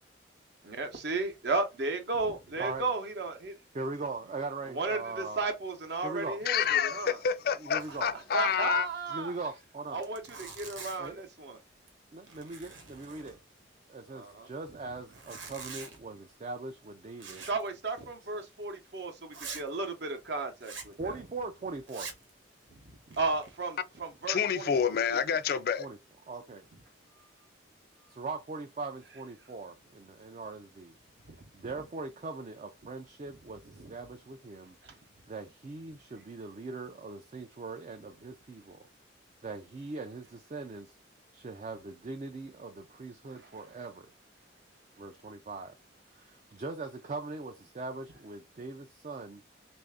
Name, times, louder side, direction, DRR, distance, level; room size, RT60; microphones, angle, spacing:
voice 1, 0.6-3.6 4.7-7.2 8.3-9.3 9.9-11.6 14.1-14.8 17.5-21.2 22.7-24.9 31.2-31.8 33.7-33.9 34.8-35.0 43.4-43.5, right 3 dB, 60° right, 0.8 m, -34 dB
voice 2, 3.7-5.5 6.0-6.4 7.7-8.1 9.1-10.0 11.0-11.3 12.1-13.4 13.9-17.5 21.0-22.1 25.8-26.0 26.3-26.7 28.1-31.0 31.5-34.8 35.3-38.8 39.4-41.0 41.3-44.1 45.0-45.8 46.1-49.4, right 3 dB, 35° right, 0.3 m, -40 dB
voice 3, 6.5-8.9 24.3-25.9, left 7 dB, 50° left, 0.3 m, -28 dB
Zipper (clothing), 7.8-8.2 8.4-8.5 8.9-9.0 9.6-9.7 9.9-11.2 11.7-12.0 12.2-13.7 15.0-16.0 17.2-17.7 18.0-18.1 18.6-18.7 19.3-19.7 20.6-20.9 21.8-22.3 22.9-23.5, right 5 dB, 85° right, 1.1 m, -45 dB
3.2 x 2.5 x 3.5 m
head